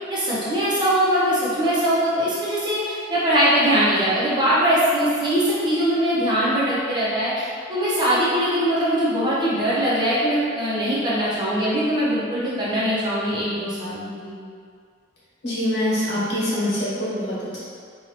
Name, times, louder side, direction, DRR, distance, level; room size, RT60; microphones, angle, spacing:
voice 1, 0.1-14.3, equal, 25° right, -9 dB, 1.0 m, -21 dB
voice 2, 15.4-17.6, left 1 dB, 60° left, -9 dB, 1.4 m, -24 dB
4.7 x 2.7 x 2.9 m, 2.1 s
head